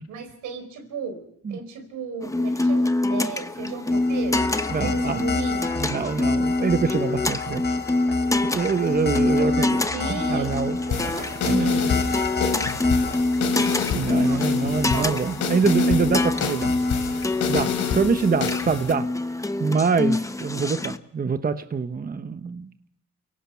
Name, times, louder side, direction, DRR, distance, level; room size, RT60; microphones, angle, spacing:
voice 1, 0.1-1.2 1.5-4.5 4.8-5.8 9.4-12.3 14.2-15.3, right 5 dB, 85° right, 8 dB, 4.6 m, -35 dB
sound 1, 2.2-21.0, left 2 dB, 10° left, 1.0 m, -25 dB
sound 2, 3.9-17.6, left 5 dB, 35° left, 1.2 m, -33 dB
voice 2, 4.7-5.2 5.8-7.8 8.4-10.8 11.4-11.9 13.9-16.7 17.5-19.1 19.6-22.7, right 5 dB, 30° right, 10 dB, 1.0 m, -25 dB
sound 3, 10.9-18.9, left 7 dB, 75° left, 3.7 m, -29 dB
29.0 x 17.5 x 5.8 m, 0.77 s
cardioid pair, 90°, 30 cm